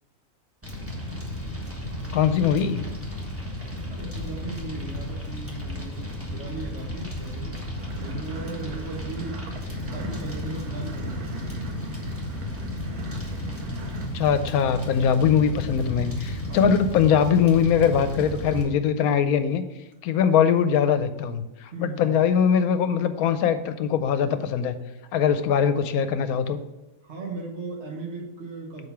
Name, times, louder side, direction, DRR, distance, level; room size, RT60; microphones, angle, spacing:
Fire, 0.6-18.6, left 1 dB, 10° right, 1.2 m, -33 dB
voice 1, 2.1-2.8 14.1-19.6 20.0-21.4 21.8-24.8 25.1-26.6, left 7 dB, 80° left, 11 dB, 1.1 m, -21 dB
voice 2, 3.9-7.6 8.0-11.9 16.5-16.7 20.2-20.4 21.7-22.2 27.0-28.9, right 3 dB, 50° right, -1 dB, 1.7 m, -37 dB
sound 1, 7.8-14.1, right 4 dB, 85° right, 1.4 m, -41 dB
6.6 x 4.6 x 5.7 m, 1.1 s
omnidirectional pair, 1.5 m